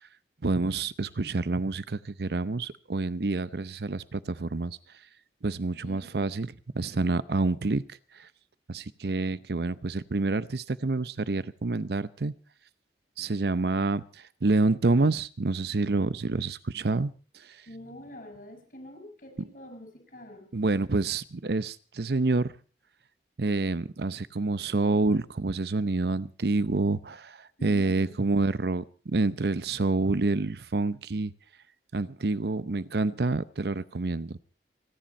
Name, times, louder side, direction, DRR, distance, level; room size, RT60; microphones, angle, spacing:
voice 1, 0.4-4.8 5.4-6.5 6.7-7.8 8.2-8.3 8.7-12.3 13.2-14.0 14.4-17.1 20.5-22.5 23.4-31.3 31.9-34.4, right 3 dB, 65° right, 16 dB, 0.7 m, -27 dB
voice 2, 5.8-6.2 17.7-20.5 27.6-28.3, equal, 50° left, 5 dB, 5.7 m, -45 dB
29.5 x 10.5 x 4.3 m, 0.37 s
head